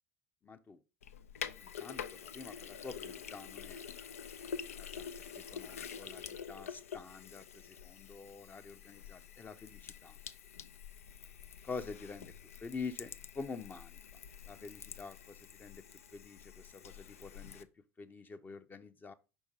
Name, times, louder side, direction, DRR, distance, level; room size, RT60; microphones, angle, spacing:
voice 1, 0.4-0.8 1.6-3.8 4.8-5.1 5.4-10.1 11.6-12.3 12.6-14.0 14.5-15.8 16.1-17.7 18.0-19.1, left 4 dB, 25° left, 0.7 m, -47 dB
Sink (filling or washing), 1.0-17.6, left 7 dB, 75° left, 0.4 m, -47 dB
5.1 x 4.8 x 5.3 m
figure-of-eight pair, 70°, 8 cm